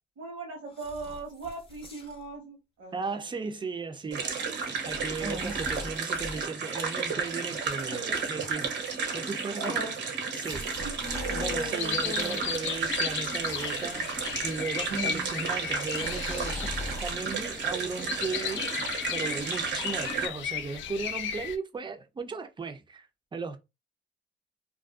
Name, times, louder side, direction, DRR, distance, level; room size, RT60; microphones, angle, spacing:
voice 1, 0.2-3.2 5.2-5.5 9.6-10.0 11.0-12.4 14.9-15.3, right 2 dB, 80° right, 1.2 m, -38 dB
sound 1, 0.7-2.3 2.9-3.1 4.8-6.5 7.2-8.7 9.0-9.4 10.2-12.4 13.2-14.5 15.9-17.1, left 2 dB, 25° left, 0.7 m, -43 dB
voice 2, 2.9-4.2 4.8-8.8 9.1-9.8 10.4-10.8 11.3-14.1 14.4-18.7 19.1-23.6, right 4 dB, 25° right, 0.5 m, -36 dB
sound 2, 4.1-20.3, right 5 dB, 60° right, 0.8 m, -33 dB
sound 3, 11.8-21.6, left 8 dB, 70° left, 0.4 m, -35 dB
2.5 x 2.2 x 2.3 m
cardioid pair, 90°, 20 cm